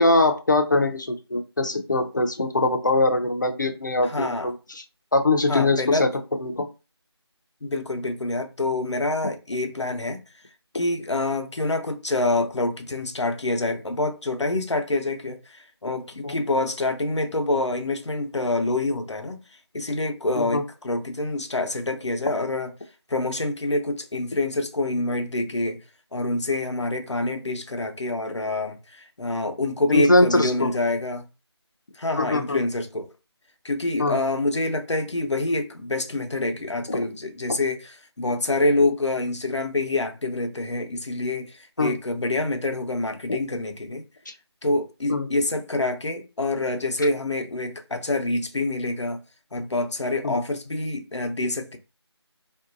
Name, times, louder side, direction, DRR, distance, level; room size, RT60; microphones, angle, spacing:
voice 1, 0.0-4.8 5.1-6.1 6.4-6.7 16.2-16.4 20.4-20.6 29.9-30.7 32.2-32.6 34.0-34.2 36.9-37.0 41.8-41.9 43.3-43.4 44.3-44.4 45.1-45.3 50.2-50.4, left 2 dB, 45° left, 0.5 m, -22 dB
voice 2, 4.0-4.5 5.5-6.1 7.6-10.2 10.7-19.4 19.7-22.7 23.1-25.8 26.1-31.3 32.0-33.1 33.6-44.0 44.6-49.2 49.5-51.8, left 2 dB, 90° left, 0.8 m, -26 dB
3.7 x 2.6 x 2.5 m
figure-of-eight pair, 170°, 14 cm